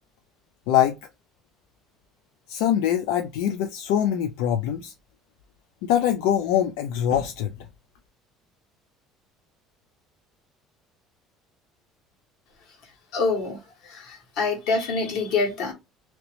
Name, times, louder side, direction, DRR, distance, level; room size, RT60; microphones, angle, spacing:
voice 1, 2.5-4.9 5.8-7.5, left 10 dB, 90° left, 0.4 m, -23 dB
voice 2, 13.1-13.6 13.8-15.7, left 4 dB, 60° left, 1.4 m, -26 dB
3.0 x 2.9 x 3.0 m
cardioid pair, 180°, 0 cm